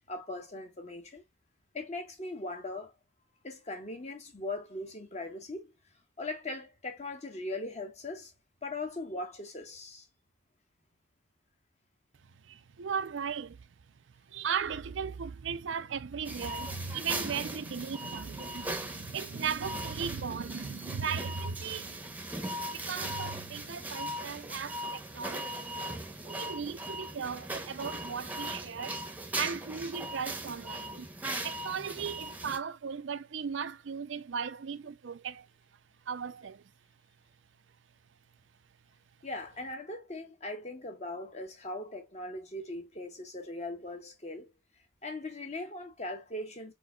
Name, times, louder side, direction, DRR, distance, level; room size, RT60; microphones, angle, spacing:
voice 1, 0.1-1.2 1.7-2.9 3.4-5.7 6.2-8.3 8.6-10.1 22.3-22.6 39.2-44.5 45.0-46.7, left 2 dB, 35° left, 1.3 m, -40 dB
voice 2, 12.2-13.7 14.3-29.0 29.3-31.1 31.4-35.5 36.1-36.7, right 6 dB, 75° right, 0.5 m, -37 dB
sound 1, 16.2-32.6, right 1 dB, 10° right, 0.8 m, -39 dB
4.6 x 4.4 x 2.3 m
head